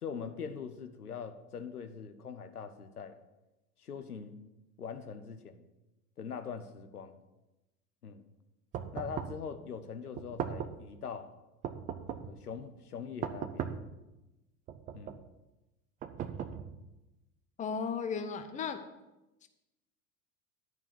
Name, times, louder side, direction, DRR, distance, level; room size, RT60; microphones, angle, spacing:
voice 1, 0.0-3.2 3.8-4.4 4.8-5.6 6.2-7.2 8.0-8.2 8.9-11.3 12.2-13.8 14.9-15.2, left 6 dB, 80° left, 9 dB, 0.7 m, -42 dB
sound 1, 8.7-9.5 10.2-10.9 11.6-12.4 13.2-14.0 14.7-15.3 16.0-16.9, right 8 dB, 20° right, 0.4 m, -38 dB
voice 2, 17.6-18.8 19.4-19.5, left 6 dB, 15° left, 9 dB, 0.6 m, -35 dB
11.0 x 4.6 x 6.9 m, 1.0 s
figure-of-eight pair, 75°, 45 cm